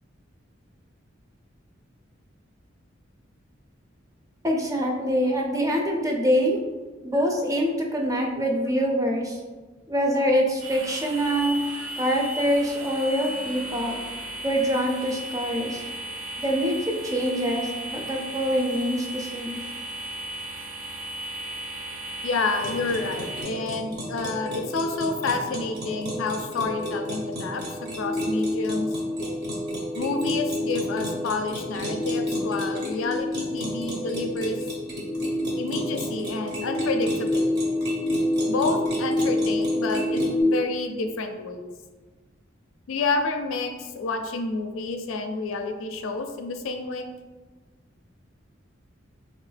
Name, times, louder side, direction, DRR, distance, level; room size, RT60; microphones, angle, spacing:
voice 1, 4.4-6.6 7.0-9.4 9.9-11.6 12.0-14.0 14.4-15.8 16.4-19.6, equal, 15° right, 0 dB, 0.5 m, -25 dB
sound 1, 10.6-23.4, right 1 dB, 90° right, 1.0 m, -36 dB
voice 2, 22.2-27.6 28.0-28.9 30.0-34.6 35.6-37.8 38.5-41.7 42.9-47.0, left 3 dB, 90° left, 6 dB, 0.4 m, -29 dB
sound 2, 22.6-40.4, left 1 dB, 55° right, 0.9 m, -29 dB
3.0 x 2.9 x 3.2 m, 1.3 s
head